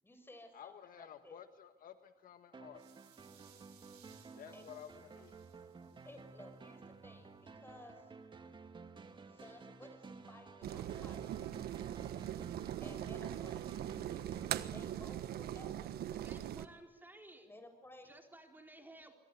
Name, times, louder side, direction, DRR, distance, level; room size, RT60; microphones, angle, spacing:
voice 1, 0.0-1.4 4.5-4.7 6.0-8.1 8.4-8.5 9.3-11.4 12.8-13.6 14.7-16.4 17.4-18.1, left 1 dB, 15° left, 7 dB, 6.5 m, -56 dB
voice 2, 0.5-2.9 4.4-5.4, left 9 dB, 55° left, 9 dB, 1.6 m, -53 dB
sound 1, 2.5-16.1, right 4 dB, 30° right, 2.3 m, -54 dB
sound 2, 2.7-6.8, right 10 dB, 85° right, 6.2 m, -66 dB
sound 3, 10.6-16.7, right 11 dB, 70° right, 1.4 m, -41 dB
voice 3, 16.2-17.5 18.0-19.1, right 1 dB, 10° right, 3 dB, 4.1 m, -56 dB
26.0 x 23.5 x 9.4 m, 1.0 s
cardioid pair, 110°, 17 cm